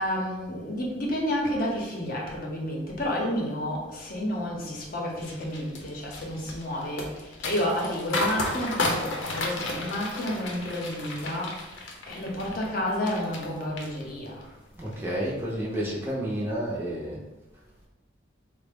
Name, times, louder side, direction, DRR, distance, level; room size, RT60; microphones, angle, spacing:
voice 1, 0.0-11.6 12.1-14.4, equal, 45° left, -2 dB, 0.7 m, -30 dB
sound 1, 5.2-13.5 13.8-14.4 14.8-15.1, left 2 dB, 80° left, 0.6 m, -33 dB
voice 2, 14.8-17.2, right 1 dB, 10° right, -5 dB, 0.5 m, -30 dB
3.7 x 2.0 x 3.5 m, 1.1 s
head